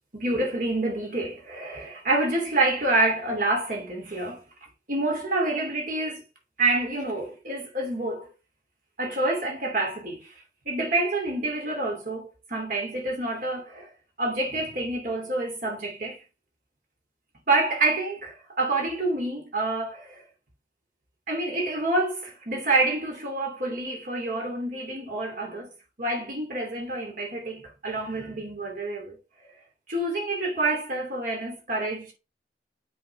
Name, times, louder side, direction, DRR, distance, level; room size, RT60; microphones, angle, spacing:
voice 1, 0.1-4.4 4.9-6.2 6.6-8.3 9.0-10.3 10.6-13.9 14.2-16.2 17.5-20.2 21.3-25.7 26.0-29.2 29.9-32.1, right 2 dB, 50° right, 2.8 m, -27 dB
7.7 x 5.2 x 3.4 m
head